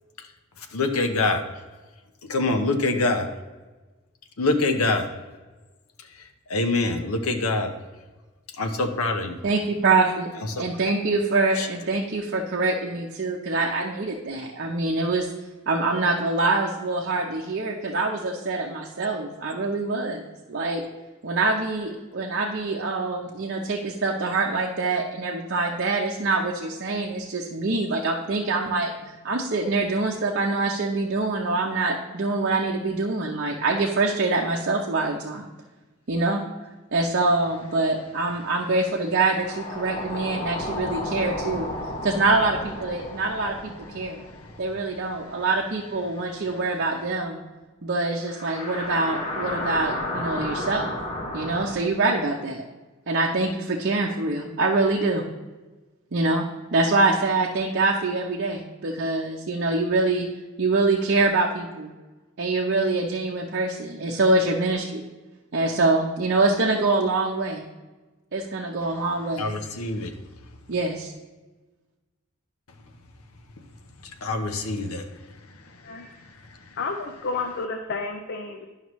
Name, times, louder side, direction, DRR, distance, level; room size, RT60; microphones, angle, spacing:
voice 1, 0.7-1.4 2.3-3.3 4.4-5.1 6.5-7.7 8.6-9.4 10.5-10.6 11.6-11.7 69.4-70.1 74.2-75.0, left 2 dB, 85° left, 6 dB, 0.8 m, -24 dB
voice 2, 9.4-10.3 10.6-15.3 15.7-20.8 21.2-35.5 36.1-36.4 36.9-41.7 42.0-44.2 44.6-47.4 47.8-50.9 51.3-52.6 53.1-55.2 56.1-56.4 56.7-60.3 60.6-61.9 62.4-65.1 65.5-67.6 68.3-69.5 70.7-71.1, right 3 dB, 55° right, -1 dB, 0.7 m, -25 dB
sound 1, 39.3-45.9 46.2-46.3 48.3-51.7, left 1 dB, 35° left, 1.2 m, -33 dB
voice 3, 76.8-78.7, left 4 dB, 55° left, 4 dB, 0.6 m, -31 dB
11.0 x 5.7 x 3.1 m, 1.2 s
head